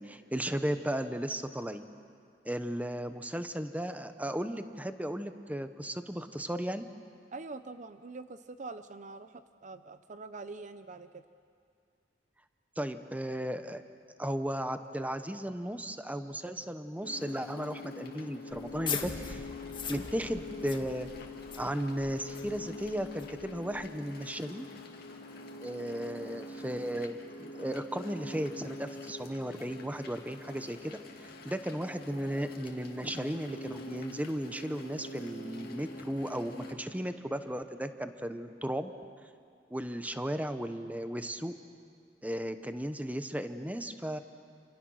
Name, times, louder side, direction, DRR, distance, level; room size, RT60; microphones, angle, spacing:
voice 1, 0.0-1.9 2.4-6.9 12.8-13.8 14.2-19.4 19.9-21.1 21.6-24.7 25.6-38.9 39.7-41.5 42.2-44.2, right 1 dB, 10° right, 9 dB, 0.9 m, -35 dB
voice 2, 7.3-11.2, right 3 dB, 40° right, 11 dB, 0.7 m, -44 dB
sound 1, 17.0-36.7, left 2 dB, 55° left, 2.5 m, -45 dB
sound 2, 18.5-23.9, left 5 dB, 25° left, 1.6 m, -41 dB
29.0 x 28.5 x 6.4 m, 2.3 s
head